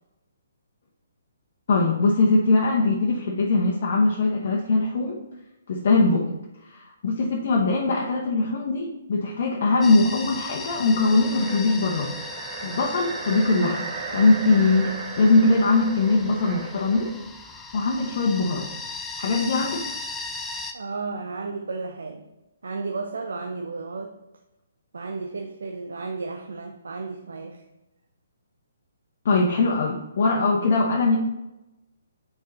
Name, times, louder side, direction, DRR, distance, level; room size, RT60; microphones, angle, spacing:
voice 1, 1.7-5.2 5.7-6.3 6.7-12.1 12.6-17.1 17.7-18.7 19.2-19.8 29.2-31.2, left 3 dB, 55° left, -2 dB, 1.1 m, -21 dB
sound 1, 9.8-20.7, left 3 dB, 10° left, 0.5 m, -37 dB
sound 2, 10.8-17.2, right 5 dB, 40° right, 0.8 m, -36 dB
voice 2, 20.7-22.2 22.6-24.1 24.9-27.6, right 3 dB, 75° right, 5 dB, 0.6 m, -33 dB
6.5 x 4.7 x 4.1 m, 0.94 s
hypercardioid pair, 140°, 0 cm